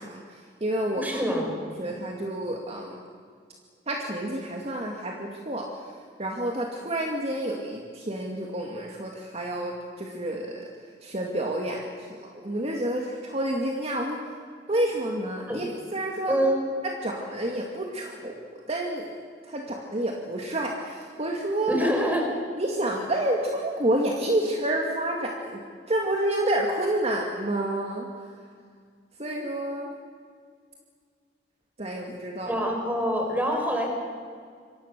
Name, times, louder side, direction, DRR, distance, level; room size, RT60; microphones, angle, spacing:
voice 1, 0.0-1.2 1.8-3.0 3.9-5.9 6.2-14.4 14.7-16.4 16.8-19.2 19.4-21.9 22.6-25.6 25.9-28.3 29.2-29.9 31.8-32.5, right 1 dB, 35° right, 0 dB, 2.3 m, -29 dB
voice 2, 0.9-1.5 15.5-15.6 16.3-16.6 21.7-22.3 32.5-33.9, equal, 10° right, 2 dB, 5.2 m, -25 dB
27.5 x 23.0 x 6.8 m, 2.1 s
head